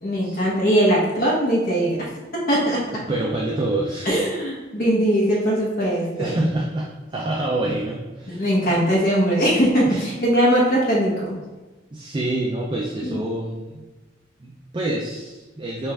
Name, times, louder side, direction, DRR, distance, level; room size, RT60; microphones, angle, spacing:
voice 1, 0.0-2.1 2.5-2.8 4.0-6.5 8.3-11.4 13.0-13.2, equal, 55° left, -4 dB, 1.0 m, -20 dB
voice 2, 3.1-4.1 6.0-8.8 9.9-10.0 11.9-13.8 14.4-15.9, right 1 dB, 25° right, -2 dB, 0.4 m, -27 dB
5.6 x 2.5 x 3.3 m, 1.2 s
head